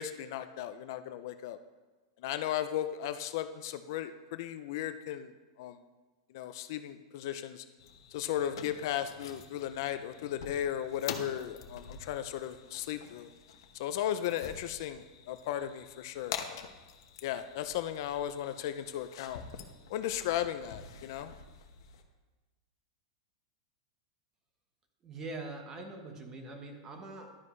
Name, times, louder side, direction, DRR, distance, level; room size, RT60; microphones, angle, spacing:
voice 1, 0.0-1.6 2.2-5.3 5.6-5.8 6.3-7.6 8.1-13.3 13.7-16.7 17.2-19.4 19.9-21.3, left 11 dB, 50° left, 10 dB, 0.5 m, -36 dB
sound 1, 7.8-22.0, left 7 dB, 65° left, 1.1 m, -47 dB
voice 2, 25.0-27.3, right 2 dB, 20° right, 4 dB, 1.1 m, -43 dB
11.5 x 9.7 x 3.2 m, 1.2 s
supercardioid pair, 165°, 3 cm